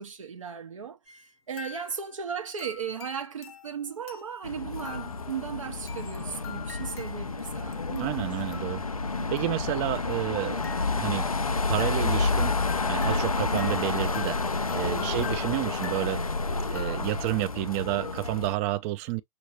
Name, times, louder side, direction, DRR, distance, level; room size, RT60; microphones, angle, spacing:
voice 1, 0.0-8.3 8.7-8.8 9.1-9.5 14.8-15.2, right 7 dB, 70° right, 0.8 m, -37 dB
sound 1, 1.1-1.3 1.6-2.2 2.6-17.5, left 8 dB, 50° left, 0.8 m, -46 dB
sound 2, 4.4-18.5, left 3 dB, 90° left, 0.5 m, -30 dB
voice 2, 8.0-8.8 9.3-11.3 11.7-12.6 12.9-14.4 14.7-16.2 16.7-19.2, right 16 dB, 25° right, 0.4 m, -30 dB
6.2 x 2.7 x 2.8 m
figure-of-eight pair, 110°, 18 cm